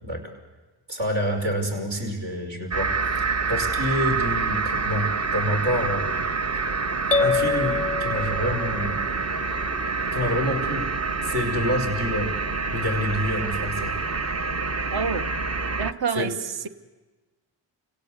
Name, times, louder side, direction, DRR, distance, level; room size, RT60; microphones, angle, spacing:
voice 1, 0.0-0.4 0.9-6.2 7.2-9.1 10.1-10.9 11.2-12.3 12.7-13.9 16.1-16.3, equal, 65° right, 0 dB, 5.4 m, -27 dB
sound 1, 2.7-15.9, right 4 dB, 30° right, 0.9 m, -27 dB
sound 2, 7.1-9.0, left 4 dB, 5° left, 0.7 m, -25 dB
voice 2, 14.9-15.3 15.8-16.7, right 6 dB, 50° right, 10 dB, 1.2 m, -28 dB
29.0 x 17.5 x 8.0 m, 1.2 s
supercardioid pair, 50°, 48 cm